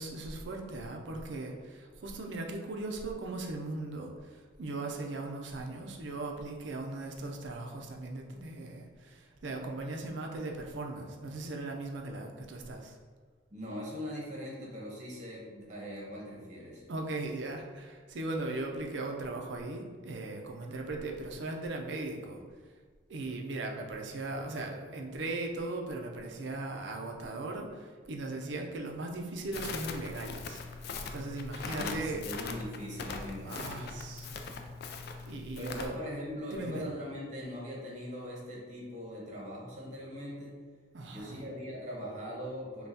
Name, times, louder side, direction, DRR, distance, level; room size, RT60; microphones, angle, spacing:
voice 1, 0.0-13.0 16.9-22.4 23.1-30.6 31.1-32.3 33.4-34.6 35.3-36.0 36.5-36.9 40.9-41.4, right 2 dB, 65° right, 2 dB, 0.5 m, -38 dB
voice 2, 13.5-16.8 31.8-33.9 35.6-40.6 41.1-42.9, equal, 35° right, -4 dB, 0.9 m, -41 dB
Crackle, 29.5-35.9, left 4 dB, 55° left, 0.3 m, -40 dB
5.4 x 2.3 x 2.7 m, 1.5 s
head